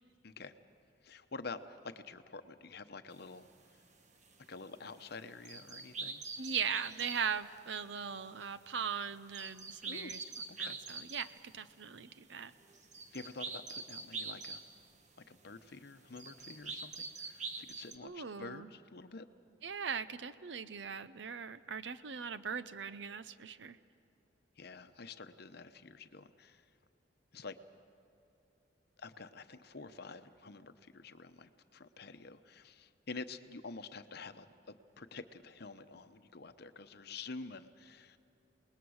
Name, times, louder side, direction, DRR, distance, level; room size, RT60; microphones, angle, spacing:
voice 1, 1.0-3.5 4.5-6.2 9.8-10.1 10.5-10.8 13.1-14.6 15.3-19.3 24.6-26.6 27.3-27.6 29.0-38.2, left 4 dB, 55° left, 10 dB, 0.9 m, -48 dB
sound 1, 3.1-3.2 3.7-3.8 4.2-7.4 7.7-15.1 15.5-15.7 16.1-18.0, right 4 dB, 40° right, 1.3 m, -45 dB
voice 2, 6.4-10.2 10.6-12.5 18.0-18.7 19.6-23.8, right 6 dB, 65° right, 14 dB, 0.7 m, -39 dB
28.0 x 20.0 x 6.4 m, 2.7 s
head